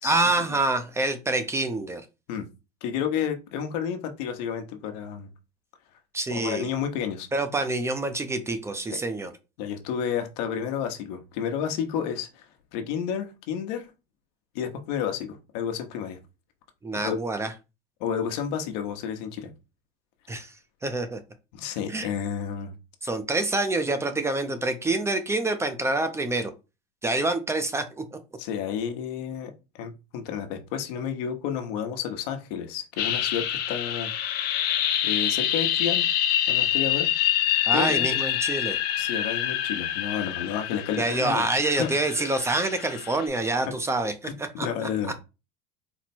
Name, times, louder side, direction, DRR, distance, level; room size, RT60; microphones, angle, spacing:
voice 1, 0.0-2.0 6.1-6.7 7.3-9.3 16.8-17.5 20.3-20.5 20.8-21.2 21.9-22.1 23.0-26.5 27.0-28.2 37.7-38.8 41.0-44.7, right 2 dB, 15° right, 0.5 m, -26 dB
voice 2, 2.8-5.3 6.3-7.3 9.6-12.4 12.7-13.9 14.5-16.2 16.9-17.2 18.0-19.5 21.5-22.7 28.4-34.1 35.0-36.1 36.5-37.1 37.7-38.1 39.0-41.5 41.8-42.0 44.2-45.2, left 8 dB, 75° left, 1.0 m, -31 dB
sound 1, 33.0-43.3, left 11 dB, 50° left, 0.8 m, -26 dB
4.3 x 2.1 x 4.3 m
supercardioid pair, 135°, 21 cm